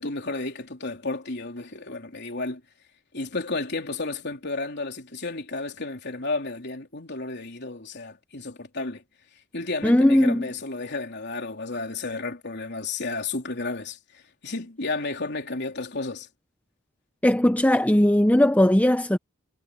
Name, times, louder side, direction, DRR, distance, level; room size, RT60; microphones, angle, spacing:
voice 1, 0.0-2.6 3.1-9.0 9.5-16.3, left 3 dB, 55° left, 3.7 m, -32 dB
voice 2, 9.8-10.5 17.2-19.2, left 1 dB, 5° left, 0.7 m, -19 dB
head